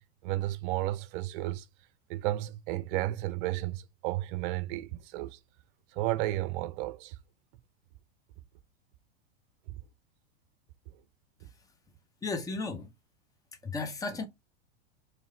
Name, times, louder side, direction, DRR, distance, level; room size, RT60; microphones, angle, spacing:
voice 1, 0.2-1.7 2.1-5.4 5.9-7.2, right 16 dB, 50° right, 0.6 m, -32 dB
voice 2, 12.2-12.9 13.6-14.3, left 3 dB, 10° left, 0.7 m, -34 dB
3.2 x 3.1 x 3.7 m
hypercardioid pair, 120°, 33 cm